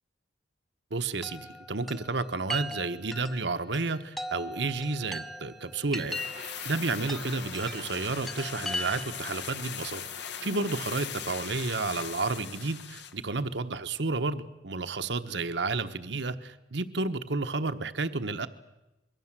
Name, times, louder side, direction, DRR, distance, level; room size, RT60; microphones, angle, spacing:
voice 1, 0.9-10.0 10.4-18.5, right 3 dB, 65° right, 10 dB, 1.1 m, -31 dB
Chime, 1.2-9.3, equal, ahead, 0.8 m, -39 dB
sound 1, 6.0-13.3 13.5-13.6, left 7 dB, 65° left, 1.3 m, -40 dB
25.5 x 22.5 x 7.5 m, 1.0 s
head